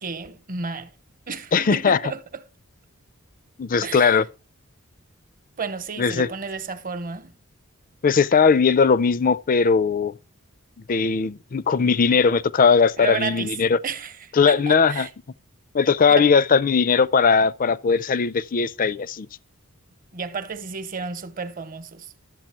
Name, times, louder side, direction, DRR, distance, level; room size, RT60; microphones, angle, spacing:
voice 1, 0.0-0.9 1.3-2.4 3.8-4.2 5.6-7.4 13.0-13.5 13.8-15.1 16.2-16.3 20.1-22.1, right 5 dB, 40° right, 1.0 m, -32 dB
voice 2, 1.5-2.0 3.6-4.2 6.0-6.3 8.0-10.1 10.9-13.8 14.3-15.1 15.7-19.3, left 5 dB, 40° left, 0.5 m, -19 dB
12.0 x 8.1 x 4.4 m
head